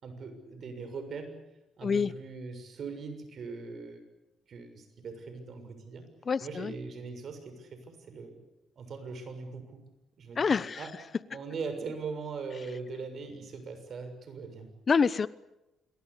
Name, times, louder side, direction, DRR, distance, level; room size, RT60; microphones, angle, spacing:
voice 1, 0.0-1.4 1.8-4.0 4.5-6.1 6.4-8.4 8.8-9.8 10.2-10.9 11.3-14.7, right 4 dB, 55° right, 8 dB, 6.7 m, -41 dB
voice 2, 6.3-6.7 10.4-10.8 14.9-15.3, left 5 dB, 40° left, 17 dB, 0.9 m, -26 dB
27.0 x 22.5 x 8.4 m, 0.92 s
cardioid pair, 90°, 0 cm